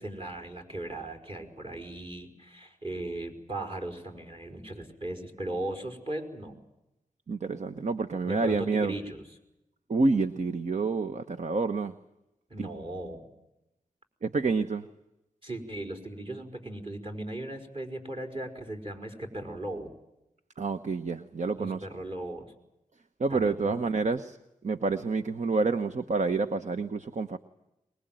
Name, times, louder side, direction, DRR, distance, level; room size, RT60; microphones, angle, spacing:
voice 1, 0.0-6.5 8.2-9.2 12.5-13.3 15.4-19.9 21.6-22.5 23.3-23.8, right 1 dB, 40° right, 5 dB, 4.9 m, -37 dB
voice 2, 7.3-8.9 9.9-12.0 12.6-12.7 14.2-14.9 20.6-21.9 23.2-24.4 24.6-27.4, right 3 dB, 55° right, 9 dB, 1.0 m, -28 dB
23.5 x 21.5 x 9.1 m, 0.90 s
wide cardioid pair, 75°, 14 cm